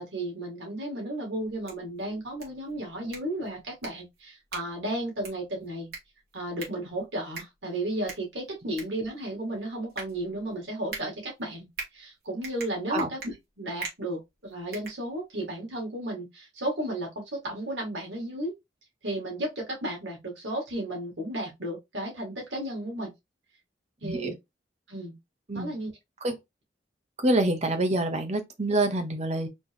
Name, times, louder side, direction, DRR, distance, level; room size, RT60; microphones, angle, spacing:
voice 1, 0.0-5.9 6.3-11.7 11.9-18.5 19.0-23.1 24.0-24.3 24.9-25.2 25.5-25.9, right 1 dB, 80° right, 2.0 m, -34 dB
sound 1, 1.4-15.6, right 4 dB, 55° right, 2.0 m, -44 dB
voice 2, 24.0-24.3 25.5-25.7 26.2-26.4 27.2-29.5, right 1 dB, 40° right, 0.9 m, -26 dB
4.2 x 2.9 x 3.5 m
head